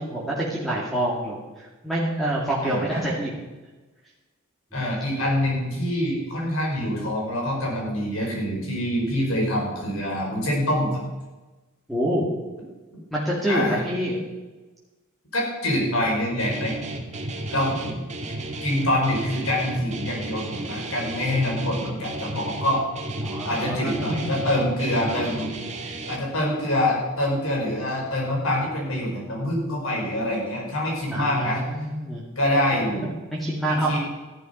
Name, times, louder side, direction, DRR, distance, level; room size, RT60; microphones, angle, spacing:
voice 1, 0.0-3.3 11.9-12.3 13.1-14.2 23.2-24.3 25.8-26.0 31.1-32.2 33.3-34.0, right 1 dB, ahead, -5 dB, 2.4 m, -27 dB
voice 2, 2.6-3.1 4.7-11.0 13.4-13.8 15.3-16.7 17.5-17.9 18.6-22.8 23.4-25.5 26.1-31.6 32.3-33.1 33.7-34.0, left 1 dB, 65° left, -1 dB, 5.0 m, -25 dB
Guitar, 16.4-26.2, right 1 dB, 30° right, 1.7 m, -33 dB
14.0 x 11.5 x 5.3 m, 1.2 s
head